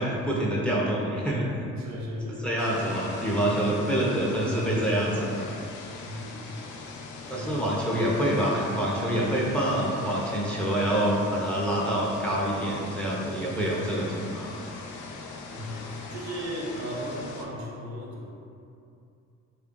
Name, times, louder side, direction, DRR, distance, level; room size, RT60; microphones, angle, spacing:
voice 1, 0.0-1.4 1.8-1.9 2.3-5.5 7.3-14.6, right 1 dB, 5° left, -5 dB, 0.6 m, -26 dB
voice 2, 1.8-2.8 6.0-6.6 7.2-7.6 15.5-18.3, equal, 65° right, -2 dB, 0.7 m, -36 dB
sound 1, 2.6-17.5, left 3 dB, 80° left, 0.5 m, -41 dB
3.1 x 2.4 x 3.7 m, 2.6 s
cardioid pair, 90°, 30 cm